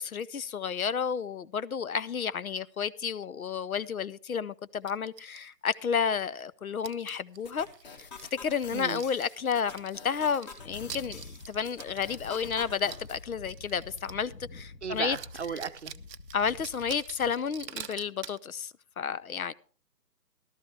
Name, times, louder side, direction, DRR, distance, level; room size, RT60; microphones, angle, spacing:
voice 1, 0.0-7.7 8.3-15.2 16.3-19.5, left 6 dB, 60° left, 0.6 m, -31 dB
sound 1, 4.9-6.5 6.8-14.3 14.6-14.7 14.9-18.4, right 8 dB, 85° right, 0.7 m, -47 dB
sound 2, 7.4-13.2, left 4 dB, 25° left, 1.8 m, -48 dB
voice 2, 8.7-9.0 14.8-15.9, right 6 dB, 45° right, 0.8 m, -35 dB
Wind, 10.5-17.7, left 3 dB, 90° left, 1.4 m, -48 dB
14.5 x 12.5 x 3.3 m
figure-of-eight pair, 150°, 49 cm